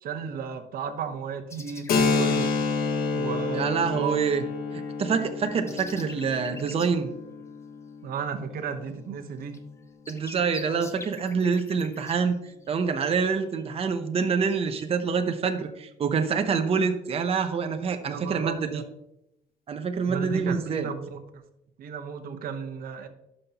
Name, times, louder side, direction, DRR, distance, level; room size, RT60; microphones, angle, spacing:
voice 1, 0.0-2.5 3.1-4.2 8.0-9.6 18.1-18.8 20.1-21.4 21.8-23.1, right 6 dB, 60° right, 8 dB, 1.0 m, -34 dB
sound 1, 1.5-2.8 4.8-6.9 9.2-9.3 9.5-12.9 13.4-13.6 14.3-14.8, left 3 dB, 15° left, 0.7 m, -46 dB
Keyboard (musical), 1.9-9.3, left 4 dB, 60° left, 1.1 m, -29 dB
voice 2, 3.5-4.4 4.7-7.1 10.1-12.4 12.7-18.8 19.7-20.9, right 5 dB, 35° right, 7 dB, 0.8 m, -26 dB
11.5 x 5.5 x 2.9 m, 0.84 s
cardioid pair, 110°, 17 cm